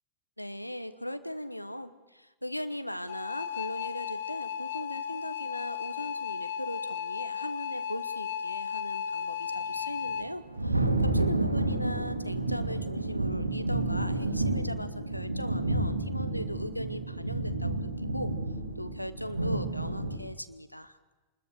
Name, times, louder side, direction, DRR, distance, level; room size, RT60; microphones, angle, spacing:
voice 1, 0.4-18.3 18.8-21.0, left 1 dB, 90° left, 11 dB, 1.2 m, -39 dB
sound 1, 3.1-10.3, left 8 dB, 60° left, 0.9 m, -35 dB
Thunder, 10.0-20.2, right 2 dB, 85° right, 1.5 m, -30 dB
24.5 x 21.0 x 6.6 m, 1.2 s
figure-of-eight pair, 90°, 0 cm